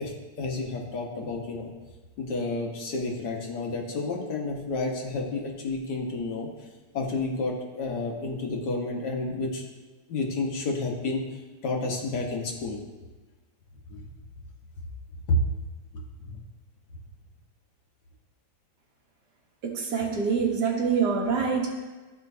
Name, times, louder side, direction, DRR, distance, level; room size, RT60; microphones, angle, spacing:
voice 1, 0.0-1.7 2.2-6.7 6.9-9.6 10.1-12.8 13.9-14.1 15.3-15.4 15.9-16.4, left 2 dB, 75° left, 0 dB, 1.8 m, -30 dB
voice 2, 19.6-21.7, right 5 dB, 75° right, 0 dB, 1.8 m, -25 dB
12.0 x 5.1 x 2.7 m, 1.3 s
omnidirectional pair, 1.8 m